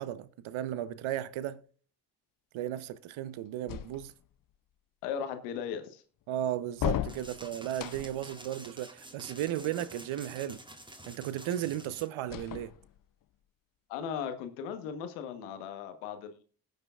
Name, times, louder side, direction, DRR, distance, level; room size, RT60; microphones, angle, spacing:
voice 1, 0.0-1.6 2.5-4.1 6.3-10.6 11.1-12.7, right 12 dB, 75° right, 0.9 m, -35 dB
sound 1, 3.7-4.4 6.7-8.3 12.2-13.2, left 11 dB, 45° left, 0.6 m, -36 dB
voice 2, 5.0-6.0 13.9-16.4, left 7 dB, 90° left, 1.3 m, -37 dB
sound 2, 7.1-12.1, right 1 dB, 10° right, 1.8 m, -49 dB
20.0 x 7.9 x 2.4 m
hypercardioid pair, 40°, 48 cm